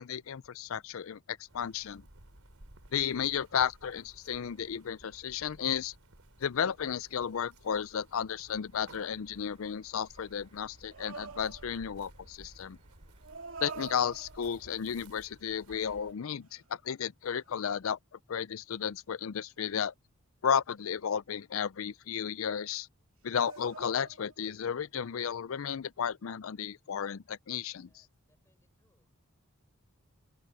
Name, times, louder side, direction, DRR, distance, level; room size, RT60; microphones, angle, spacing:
voice 1, 0.0-2.0 2.9-5.9 6.4-12.8 13.6-18.0 18.3-19.9 20.4-22.9 23.2-27.9, left 8 dB, 70° left, 0.4 m, -33 dB
sound 1, 1.5-16.1, right 1 dB, 85° right, 3.7 m, -57 dB
sound 2, 8.7-14.0, right 3 dB, 30° right, 6.0 m, -70 dB
sound 3, 10.9-12.0 13.2-14.8 15.7-16.7 17.2-17.5 23.3-24.5, right 5 dB, 70° right, 2.6 m, -47 dB
voice 2, 27.9-29.1, left 1 dB, 10° left, 5.8 m, -76 dB
open air
head